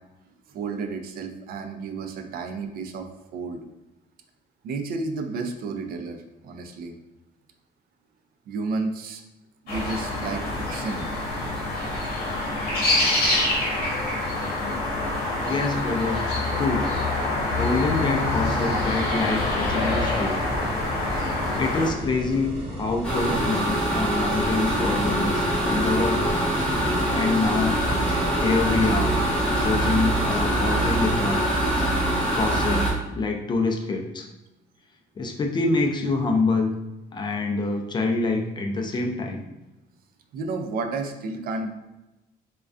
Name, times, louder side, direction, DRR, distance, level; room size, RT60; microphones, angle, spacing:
voice 1, 0.5-3.1 3.3-3.6 4.6-6.9 8.5-9.2 9.6-10.4 10.7-11.1 40.3-41.7, right 3 dB, 60° right, 5 dB, 0.4 m, -31 dB
sound 1, 9.7-21.9, left 2 dB, 65° left, 0.9 m, -26 dB
voice 2, 15.4-16.2 16.6-16.8 17.6-20.4 21.6-26.4 27.1-27.8 28.4-29.2 29.6-31.8 32.3-32.9 33.1-34.3 35.2-36.7 37.1-39.4, left 3 dB, 25° left, 3 dB, 0.3 m, -26 dB
sound 2, 17.5-31.4, equal, 35° right, 1.0 m, -34 dB
sound 3, 23.0-32.9, right 1 dB, 5° left, 0.8 m, -24 dB
2.3 x 2.2 x 2.4 m, 0.99 s
cardioid pair, 110°, 17 cm